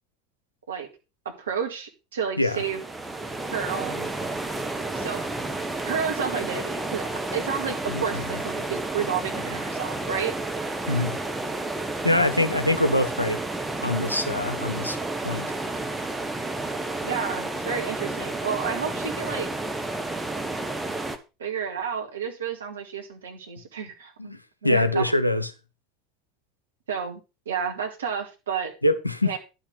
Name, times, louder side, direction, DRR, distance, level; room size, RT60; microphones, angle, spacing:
voice 1, 1.3-2.8 3.4-4.1 4.9-5.3 5.8-10.4 17.0-19.5 21.4-24.3 24.6-25.1 26.9-28.7 29.2-29.4, right 7 dB, 70° right, 2.1 m, -31 dB
sound 1, 2.5-21.2, right 2 dB, 10° right, 1.3 m, -31 dB
voice 2, 7.9-8.2 10.9-11.2 12.0-13.4 13.8-15.0 15.2-15.6 24.2-25.5 28.8-29.4, left 1 dB, 90° left, 0.8 m, -24 dB
11.0 x 5.9 x 5.8 m
figure-of-eight pair, 75°, 0 cm